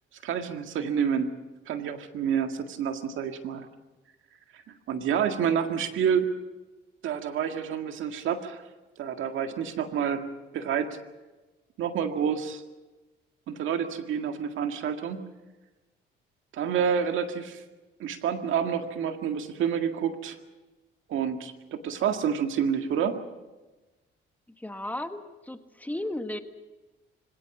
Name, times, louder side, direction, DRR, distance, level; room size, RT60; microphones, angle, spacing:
voice 1, 0.2-1.3 1.7-3.7 4.5-6.3 7.0-8.6 9.0-10.2 10.5-11.0 11.8-12.6 13.5-15.2 16.5-17.6 18.0-20.4 21.1-23.2, right 7 dB, 80° right, 6 dB, 1.9 m, -28 dB
voice 2, 24.6-26.4, left 1 dB, 10° left, 8 dB, 1.5 m, -35 dB
25.0 x 17.5 x 7.2 m, 1.1 s
cardioid pair, 90°, 20 cm